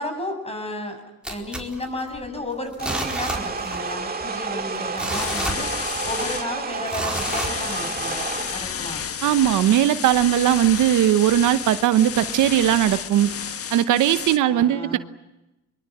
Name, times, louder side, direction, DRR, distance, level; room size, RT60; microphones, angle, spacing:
voice 1, 0.0-9.1 14.4-15.0, left 1 dB, 20° left, 6 dB, 7.5 m, -33 dB
sound 1, 1.2-2.4 2.7-3.9 4.2-4.3 4.8-6.2 6.9-8.1 8.6-8.7, right 1 dB, 5° right, 4.5 m, -30 dB
sound 2, 2.8-8.6, right 4 dB, 30° right, 2.1 m, -30 dB
sound 3, 5.1-6.5 7.1-14.4, left 7 dB, 50° left, 1.4 m, -31 dB
voice 2, 9.2-13.3 13.7-15.0, right 12 dB, 85° right, 12 dB, 1.1 m, -19 dB
23.5 x 23.5 x 8.7 m, 0.97 s
cardioid pair, 90°, 30 cm